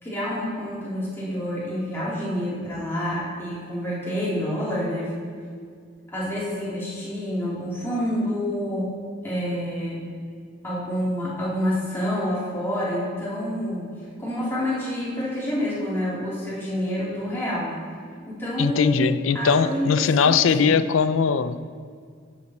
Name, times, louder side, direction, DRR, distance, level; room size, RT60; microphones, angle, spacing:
voice 1, 0.0-5.1 6.1-8.9 9.2-10.0 10.6-13.9 14.2-17.8 18.3-19.1 19.3-20.8, equal, 10° left, -8 dB, 3.0 m, -28 dB
voice 2, 18.6-21.7, left 5 dB, 90° left, 13 dB, 0.5 m, -20 dB
13.5 x 7.4 x 4.4 m, 2.1 s
head